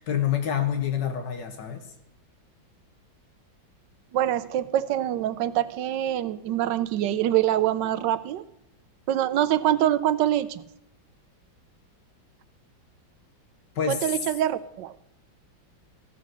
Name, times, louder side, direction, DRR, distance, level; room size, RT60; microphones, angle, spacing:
voice 1, 0.0-1.8 13.7-14.0, left 9 dB, 70° left, 7 dB, 1.8 m, -27 dB
voice 2, 4.1-8.4 9.1-10.6 13.9-14.9, right 12 dB, 75° right, 14 dB, 1.2 m, -25 dB
15.0 x 6.1 x 6.1 m, 0.84 s
omnidirectional pair, 2.0 m